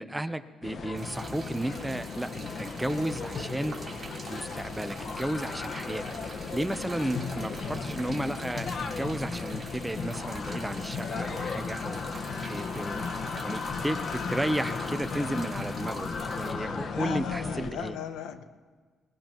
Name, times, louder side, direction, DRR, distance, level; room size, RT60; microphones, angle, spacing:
voice 1, 0.0-3.8 4.3-13.0 13.4-18.0, right 1 dB, 10° right, 10 dB, 0.8 m, -33 dB
sound 1, 0.6-17.7, left 4 dB, 55° left, 1.3 m, -35 dB
sound 2, 1.0-16.5, right 3 dB, 25° right, 3.5 m, -46 dB
voice 2, 16.6-18.4, left 8 dB, 90° left, 8 dB, 1.2 m, -36 dB
22.5 x 20.0 x 3.0 m, 1.5 s
cardioid pair, 90°, 0 cm